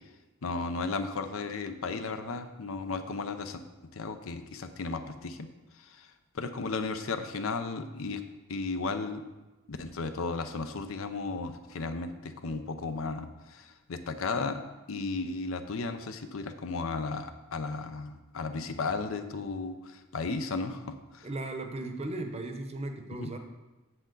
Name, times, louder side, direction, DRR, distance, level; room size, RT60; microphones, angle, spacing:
voice 1, 0.4-3.6 3.9-5.5 5.8-6.1 6.3-8.2 8.5-9.2 9.7-14.6 14.9-21.3 23.1-23.3, left 3 dB, 80° left, 8 dB, 0.6 m, -34 dB
voice 2, 21.2-23.4, right 2 dB, 30° right, 5 dB, 0.8 m, -36 dB
7.9 x 7.1 x 3.9 m, 1.1 s
head